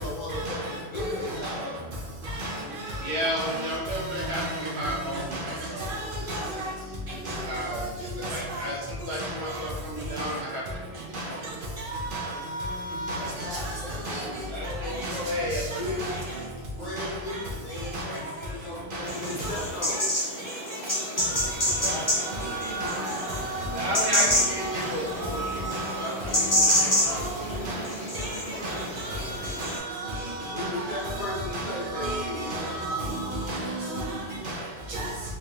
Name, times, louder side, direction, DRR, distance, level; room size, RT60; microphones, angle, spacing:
voice 1, 0.0-1.8 13.1-14.8 15.1-16.1 16.8-18.2 18.5-20.0 21.4-21.5 22.7-23.1 30.5-32.6, left 1 dB, 50° left, 0.9 m, -36 dB
voice 2, 2.3-2.6 3.4-3.8 4.2-4.9 5.3-5.5 5.8-6.7 7.3-7.5 7.7-7.9 8.2-8.7 9.2-9.6 10.2-10.3 11.1-11.2 11.8-13.7 14.0-14.3 15.0-15.2 16.0-16.2 17.0-17.1 17.9-18.0 18.9-19.0 19.4-19.5 21.2-21.5 21.8-26.0 26.3-27.8 28.1-28.4 28.6-34.2 34.4-34.6 34.9-35.1, right 1 dB, 60° right, 0.8 m, -33 dB
voice 3, 3.0-5.4 5.7-5.8 7.5-7.8 8.2-10.6 10.9-11.0 14.5-15.8 21.8-22.0 23.7-25.6 26.0-26.7 27.0-27.5 28.5-28.8, equal, 75° right, 1.3 m, -32 dB
sound 1, 19.1-29.8, left 1 dB, 20° left, 0.8 m, -28 dB
3.5 x 2.7 x 2.4 m
omnidirectional pair, 1.1 m